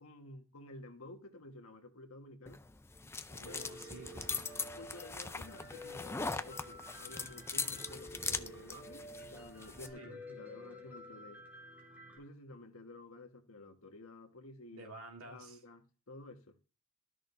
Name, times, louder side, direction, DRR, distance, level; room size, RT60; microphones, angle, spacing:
voice 1, 0.0-2.6 3.4-3.7 4.7-11.4 12.2-14.9 15.2-16.6, left 2 dB, 80° left, 1.4 m, -52 dB
sound 1, 2.5-9.9, left 4 dB, 10° left, 0.4 m, -41 dB
voice 2, 3.3-4.5 9.9-10.2 14.7-15.6, right 2 dB, 90° right, 2.2 m, -51 dB
Piano, 3.5-12.2, left 1 dB, 10° right, 2.8 m, -51 dB
13.0 x 6.3 x 2.6 m
head